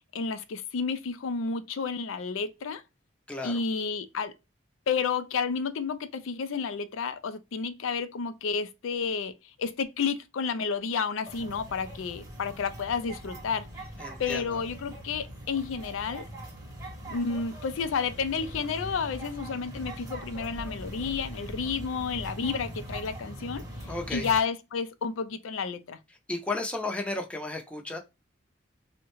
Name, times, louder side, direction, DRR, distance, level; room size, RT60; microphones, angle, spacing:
voice 1, 0.1-2.8 3.4-4.3 4.9-9.3 9.6-13.7 14.2-16.3 17.1-23.6 24.1-26.0, left 5 dB, 90° left, 0.4 m, -31 dB
sound 1, 11.3-24.4, equal, 15° right, 0.8 m, -41 dB
voice 2, 14.0-14.4 23.9-24.3 26.3-28.0, left 2 dB, 5° left, 0.5 m, -33 dB
3.5 x 2.1 x 2.9 m
head